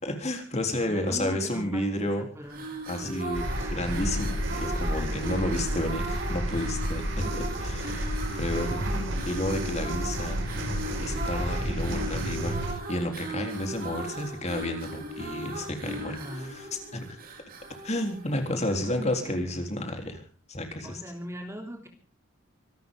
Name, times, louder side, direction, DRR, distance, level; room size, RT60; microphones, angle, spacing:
voice 1, 0.0-2.3 2.9-3.4 3.7-8.9 9.3-10.6 11.0-12.6 12.9-17.2 17.8-20.2 20.5-21.0, left 1 dB, 35° left, 4 dB, 3.7 m, -31 dB
voice 2, 0.8-2.8 3.6-4.0 4.9-5.9 16.0-16.5 18.4-20.1 20.8-21.9, equal, 15° right, 4 dB, 3.3 m, -41 dB
sound 1, 2.4-18.9, right 1 dB, 45° right, 4.8 m, -38 dB
sound 2, 3.3-12.7, right 1 dB, 65° right, 5.5 m, -31 dB
25.5 x 13.0 x 3.8 m, 0.37 s
head